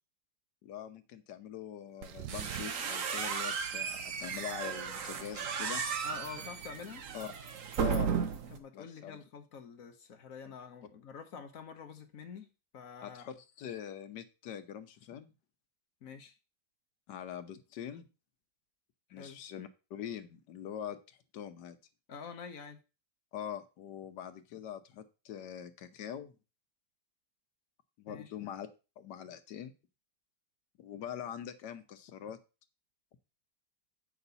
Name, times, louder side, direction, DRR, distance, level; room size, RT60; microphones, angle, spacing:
voice 1, 0.6-5.8 7.1-7.3 7.8-8.1 8.7-9.2 10.4-10.5 13.0-15.3 17.1-18.1 19.1-21.8 23.3-26.4 28.0-28.7 29.0-29.7 30.8-32.4, left 9 dB, 85° left, 1.4 m, -43 dB
sound 1, 2.0-8.6, right 6 dB, 55° right, 1.1 m, -35 dB
sound 2, 2.0-2.9, right 14 dB, 80° right, 1.2 m, -43 dB
voice 2, 6.0-7.1 8.5-13.2 16.0-16.3 19.1-19.4 22.1-22.8 28.1-28.3, left 6 dB, 60° left, 1.2 m, -47 dB
8.0 x 5.9 x 4.1 m
omnidirectional pair, 1.8 m